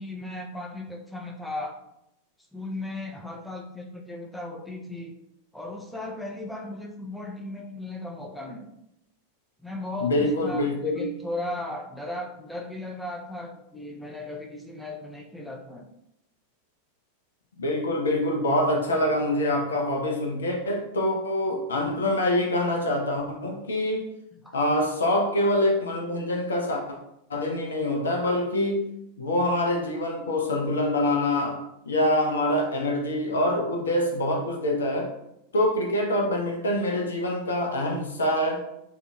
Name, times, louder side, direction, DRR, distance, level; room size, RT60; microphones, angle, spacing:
voice 1, 0.0-1.8 2.5-5.2 5.5-8.7 9.6-15.9 24.4-24.6, left 2 dB, 5° left, 0 dB, 0.4 m, -36 dB
voice 2, 10.0-11.0 17.6-24.0 24.5-26.8 27.3-28.9 29.2-35.1 35.5-38.6, left 1 dB, 70° left, 1 dB, 0.6 m, -25 dB
3.7 x 2.4 x 2.3 m, 0.82 s
figure-of-eight pair, 90°, 0 cm